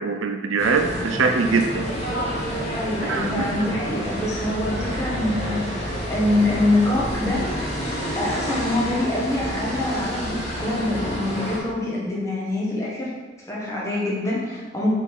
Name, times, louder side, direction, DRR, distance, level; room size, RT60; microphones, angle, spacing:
voice 1, 0.0-1.9 3.1-3.5, right 4 dB, 80° right, 5 dB, 0.6 m, -22 dB
sound 1, 0.6-11.6, equal, 35° left, 1.8 m, -29 dB
voice 2, 2.7-7.4 8.1-13.1 13.5-14.9, left 1 dB, 15° left, -5 dB, 1.4 m, -25 dB
8.1 x 3.8 x 4.6 m, 1.3 s
head